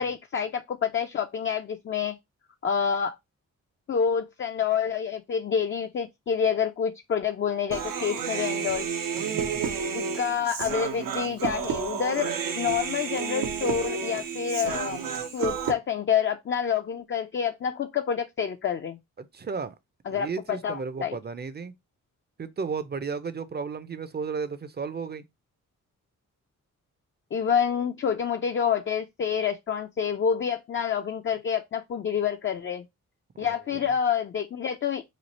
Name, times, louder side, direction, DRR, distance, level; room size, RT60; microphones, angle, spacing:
voice 1, 0.0-2.2 2.6-3.2 3.9-8.9 9.9-12.3 12.6-19.0 20.1-21.2 27.3-32.9 33.4-35.0, left 7 dB, 40° left, 0.4 m, -28 dB
Human voice, 7.7-15.7, right 7 dB, 85° right, 0.7 m, -31 dB
voice 2, 9.2-9.7 19.2-19.8 20.1-21.7 22.4-25.2 33.4-33.5, right 5 dB, 30° right, 0.5 m, -34 dB
3.1 x 2.4 x 4.0 m
cardioid pair, 70°, 32 cm